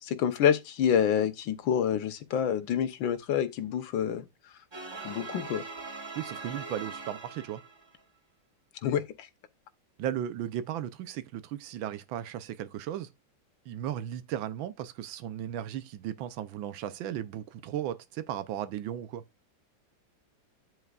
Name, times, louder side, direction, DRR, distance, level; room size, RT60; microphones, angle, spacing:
voice 1, 0.0-4.3 5.0-5.6 8.8-9.3, left 8 dB, 80° left, 1.6 m, -27 dB
sound 1, 4.7-8.0, right 4 dB, 25° right, 0.6 m, -41 dB
voice 2, 6.1-7.6 10.0-13.1 13.7-19.2, right 11 dB, 80° right, 1.5 m, -36 dB
9.1 x 8.0 x 2.4 m
omnidirectional pair, 2.1 m